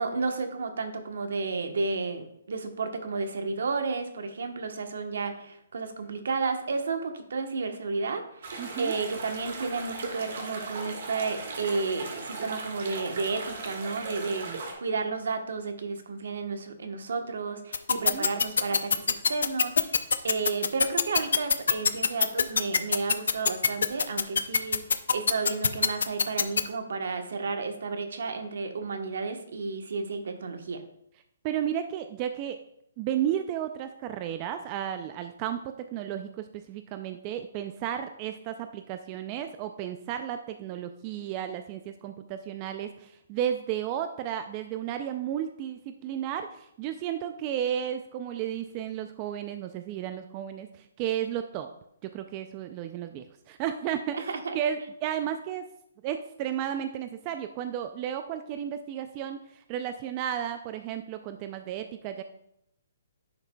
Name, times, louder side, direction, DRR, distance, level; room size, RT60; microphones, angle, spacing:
voice 1, 0.0-24.8 25.1-30.8 54.1-54.6, right 4 dB, 75° right, 6 dB, 1.0 m, -32 dB
sound 1, 8.4-14.7, right 3 dB, 55° right, 1.6 m, -38 dB
voice 2, 8.6-9.0 14.5-14.6 17.9-18.3 31.4-32.6 33.0-51.7 52.0-54.3 54.5-55.7 56.0-62.2, right 10 dB, 25° right, 8 dB, 0.3 m, -33 dB
sound 2, 17.7-26.6, left 6 dB, 80° left, 0.5 m, -22 dB
10.5 x 5.9 x 2.2 m, 0.77 s
hypercardioid pair, 165°, 0 cm